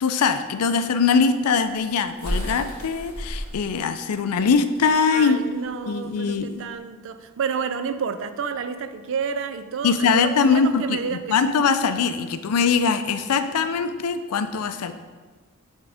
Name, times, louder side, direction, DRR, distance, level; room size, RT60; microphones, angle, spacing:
voice 1, 0.0-5.4 5.9-6.6 9.8-14.9, left 5 dB, 90° left, 10 dB, 0.4 m, -22 dB
sound 1, 1.2-6.7, equal, 85° right, 1.5 m, -34 dB
voice 2, 5.1-11.4, right 6 dB, 60° right, 10 dB, 0.4 m, -30 dB
8.5 x 3.7 x 3.4 m, 1.4 s
head